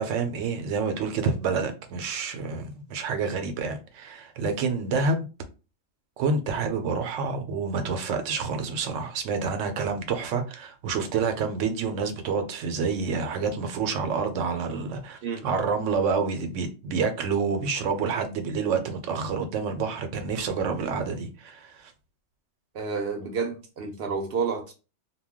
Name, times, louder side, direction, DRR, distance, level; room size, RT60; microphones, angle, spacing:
voice 1, 0.0-5.3 6.2-21.9, right 5 dB, 85° right, 0.9 m, -28 dB
voice 2, 22.7-24.7, right 5 dB, 60° right, 0.7 m, -30 dB
2.2 x 2.2 x 3.5 m
omnidirectional pair, 1.2 m